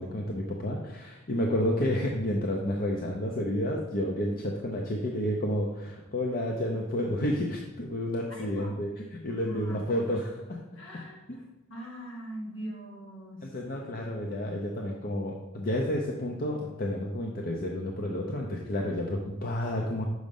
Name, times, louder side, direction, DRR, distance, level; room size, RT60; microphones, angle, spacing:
voice 1, 0.0-10.6 11.3-11.4 13.4-20.0, left 1 dB, 45° left, 0 dB, 0.7 m, -30 dB
voice 2, 8.3-8.8 9.3-9.9 10.8-13.5, equal, 65° left, -2 dB, 2.1 m, -42 dB
6.4 x 5.1 x 5.3 m, 1.0 s
head